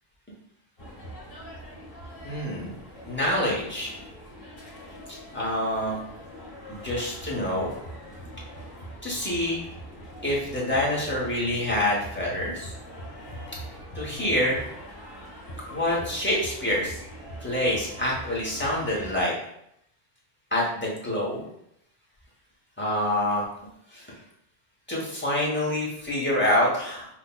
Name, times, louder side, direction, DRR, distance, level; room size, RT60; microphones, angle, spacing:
sound 1, 0.8-19.2, equal, 60° left, 1.6 m, -42 dB
voice 1, 2.2-2.8 3.1-3.9 5.1-6.0 6.7-7.7 9.0-9.6 10.2-12.7 13.9-14.6 15.7-17.0 17.4-19.3 20.5-21.4 22.8-23.4 23.9-24.1 24.9-27.1, left 1 dB, 10° left, -5 dB, 0.8 m, -26 dB
5.7 x 2.2 x 2.2 m, 0.76 s
omnidirectional pair, 1.1 m